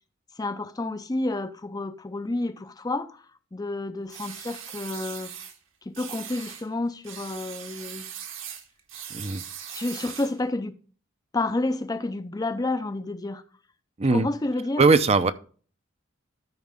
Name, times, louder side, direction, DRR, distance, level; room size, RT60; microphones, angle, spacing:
voice 1, 0.4-3.3 3.5-5.3 5.8-8.1 9.7-10.7 11.3-13.4 14.1-14.8, left 2 dB, 20° left, 0.5 m, -30 dB
sound 1, 4.1-5.6 5.9-6.7 7.0-10.4, right 9 dB, 70° right, 1.5 m, -40 dB
voice 2, 9.1-9.4 14.0-14.3 14.8-15.3, right 3 dB, 30° right, 0.5 m, -20 dB
13.0 x 5.3 x 3.5 m
head